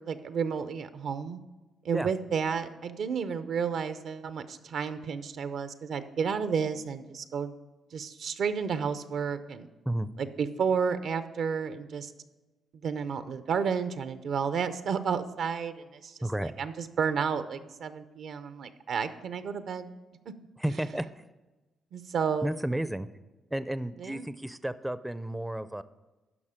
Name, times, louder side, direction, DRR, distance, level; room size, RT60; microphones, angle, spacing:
voice 1, 0.0-1.4 1.8-7.5 7.9-9.7 10.2-12.1 12.7-19.9 21.9-22.6 24.0-24.3, right 6 dB, 70° right, 11 dB, 0.6 m, -31 dB
voice 2, 16.2-16.5 20.6-21.1 22.4-23.1 23.5-25.8, right 1 dB, 10° right, 14 dB, 0.4 m, -32 dB
11.0 x 5.5 x 5.0 m, 1.2 s
supercardioid pair, 60°, 0 cm